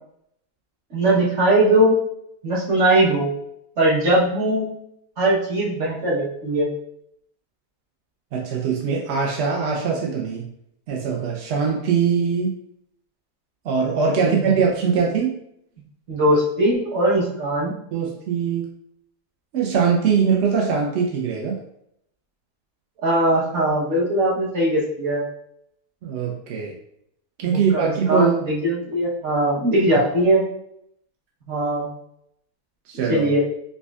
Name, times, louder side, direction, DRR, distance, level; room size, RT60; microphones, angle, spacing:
voice 1, 0.9-2.0 2.4-3.3 3.8-4.7 5.2-6.7 14.2-14.4 16.1-17.7 23.0-25.2 27.4-30.4 31.5-31.9 33.1-33.4, right 1 dB, 50° right, -5 dB, 1.3 m, -20 dB
voice 2, 8.3-10.5 10.9-12.5 13.6-15.4 17.9-18.7 19.5-21.6 26.0-26.7 27.4-28.3 29.9-30.1 32.9-33.3, right 6 dB, 65° right, -1 dB, 0.6 m, -22 dB
5.0 x 2.2 x 2.3 m, 0.74 s
omnidirectional pair, 1.7 m